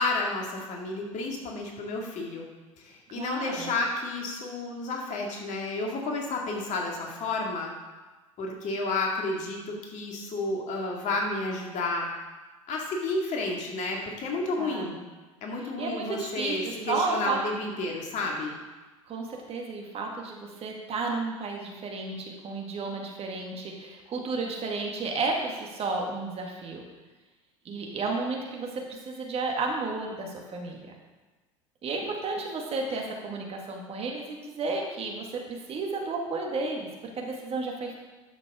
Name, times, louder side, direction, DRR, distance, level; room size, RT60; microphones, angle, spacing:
voice 1, 0.0-2.5 2.8-7.7 8.4-12.1 12.7-15.0 15.4-18.6, left 2 dB, 45° left, 0 dB, 2.3 m, -31 dB
voice 2, 3.1-3.7 14.6-15.0 15.8-17.4 19.1-26.8 27.7-30.9 31.8-37.9, right 3 dB, 35° right, 0 dB, 1.9 m, -32 dB
10.5 x 7.4 x 3.7 m, 1.2 s
hypercardioid pair, 75°, 17 cm